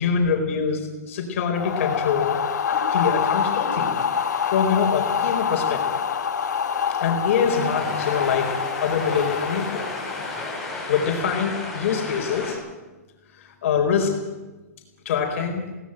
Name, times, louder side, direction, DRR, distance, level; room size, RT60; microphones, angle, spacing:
voice 1, 0.0-2.4 2.7-4.0 4.4-6.0 6.9-8.5 8.8-9.9 10.9-12.6 13.3-14.1 15.0-15.6, left 6 dB, 50° left, 2 dB, 4.5 m, -24 dB
sound 1, 1.5-10.6, left 7 dB, 85° left, 2.4 m, -26 dB
sound 2, 7.5-12.5, left 2 dB, ahead, 6.8 m, -33 dB
22.0 x 18.0 x 9.0 m, 1.2 s
hypercardioid pair, 160°, 9 cm